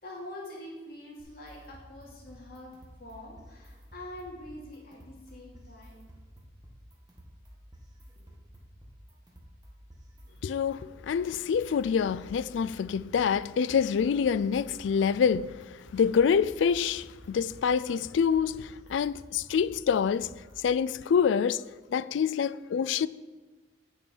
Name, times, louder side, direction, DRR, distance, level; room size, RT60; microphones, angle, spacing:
voice 1, 0.0-2.7 3.0-6.2 8.2-8.3, left 1 dB, 50° left, 2.4 m, -45 dB
sound 1, 1.2-20.8, equal, 20° right, 1.4 m, -52 dB
voice 2, 10.4-21.6 21.9-23.1, left 7 dB, 70° left, 0.3 m, -26 dB
8.7 x 7.2 x 5.4 m
head